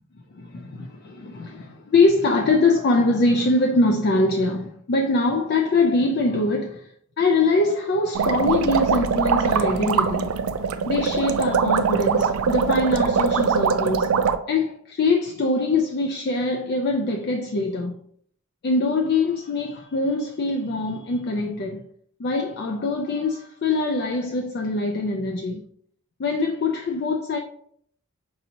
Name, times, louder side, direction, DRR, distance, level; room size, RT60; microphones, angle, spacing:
voice 1, 0.3-6.9 7.2-10.3 10.9-14.1 14.5-18.0 18.6-21.8 22.2-25.6 26.2-27.4, left 3 dB, 50° left, 0.4 m, -23 dB
sound 1, 8.1-14.4, right 6 dB, 70° right, 0.3 m, -22 dB
5.3 x 2.7 x 2.8 m
head